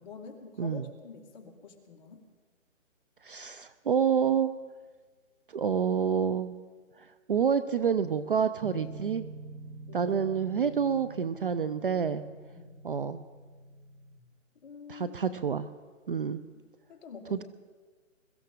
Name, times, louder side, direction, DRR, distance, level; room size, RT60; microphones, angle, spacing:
voice 1, 0.0-2.2 9.9-10.2 12.5-12.8 14.6-15.2 16.5-16.6 16.9-17.4, left 5 dB, 35° left, 1 dB, 2.0 m, -47 dB
voice 2, 3.2-4.5 5.5-6.5 7.3-9.2 9.9-12.2 12.8-13.2 14.9-15.7 16.1-16.4 17.3-17.4, right 7 dB, 45° right, 13 dB, 0.5 m, -28 dB
sound 1, 8.6-14.2, right 3 dB, 70° right, 2.3 m, -46 dB
22.0 x 14.0 x 3.7 m, 1.5 s
hypercardioid pair, 160°, 39 cm